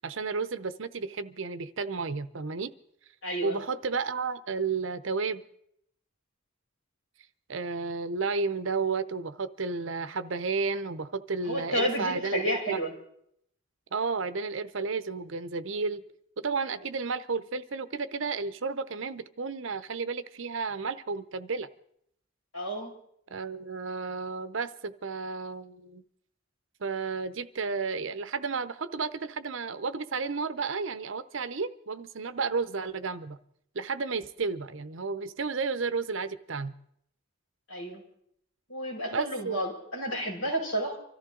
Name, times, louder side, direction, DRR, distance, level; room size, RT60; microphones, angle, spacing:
voice 1, 0.0-2.7 3.4-5.4 7.5-12.8 13.9-16.0 16.4-21.7 23.3-26.0 26.8-33.4 33.7-36.7 39.1-39.6, right 4 dB, 65° right, 13 dB, 0.7 m, -32 dB
voice 2, 3.2-3.6 11.5-12.9 22.5-22.9 37.7-38.0 38.7-41.0, equal, 70° left, -2 dB, 5.3 m, -31 dB
24.5 x 14.0 x 3.8 m, 0.71 s
head